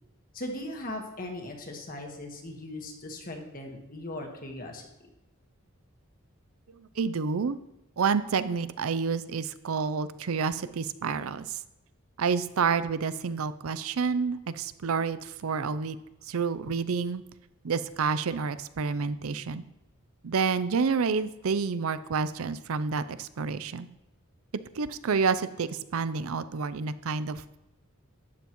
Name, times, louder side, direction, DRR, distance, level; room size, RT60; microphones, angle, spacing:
voice 1, 0.3-4.9, left 1 dB, 40° left, 2 dB, 1.4 m, -38 dB
voice 2, 6.8-7.6 8.0-11.6 12.2-16.0 16.3-17.2 17.6-19.6 20.2-23.9 24.7-27.4, right 5 dB, 80° right, 14 dB, 0.5 m, -29 dB
12.5 x 9.1 x 3.1 m, 0.93 s
head